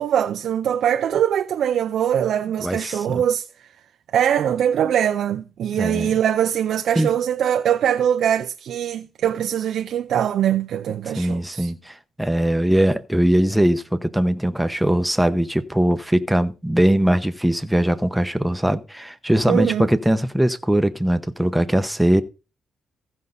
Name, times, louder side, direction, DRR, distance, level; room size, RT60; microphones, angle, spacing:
voice 1, 0.0-3.7 4.1-11.7 19.5-19.9, right 9 dB, 75° right, 0.5 m, -22 dB
voice 2, 2.6-3.2 5.7-6.1 7.0-7.1 11.1-22.2, right 1 dB, 5° right, 0.9 m, -21 dB
15.0 x 5.4 x 3.9 m
cardioid pair, 105°, 0 cm